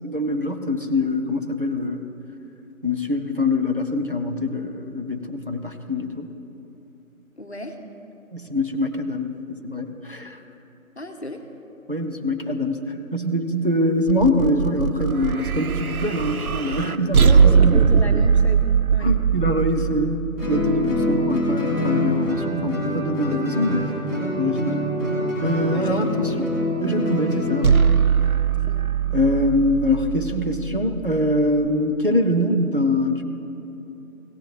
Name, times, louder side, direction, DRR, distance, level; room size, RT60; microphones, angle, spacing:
voice 1, 0.0-2.1 2.8-6.3 8.3-9.3 9.6-10.4 11.9-17.8 19.0-23.9 24.3-24.8 25.4-26.5 26.8-27.7 29.1-33.2, left 1 dB, 40° right, 4 dB, 0.6 m, -24 dB
voice 2, 7.4-7.8 11.0-11.4 17.2-19.1 23.3-23.8 25.7-26.1 26.3-26.4 28.6-29.0, equal, 50° left, 5 dB, 1.0 m, -33 dB
sound 1, 14.1-21.4 27.6-31.7, right 6 dB, 90° right, 0.6 m, -21 dB
Guitar, 20.4-27.9, equal, 10° right, 2.2 m, -25 dB
16.5 x 10.0 x 3.3 m, 2.9 s
figure-of-eight pair, 170°, 42 cm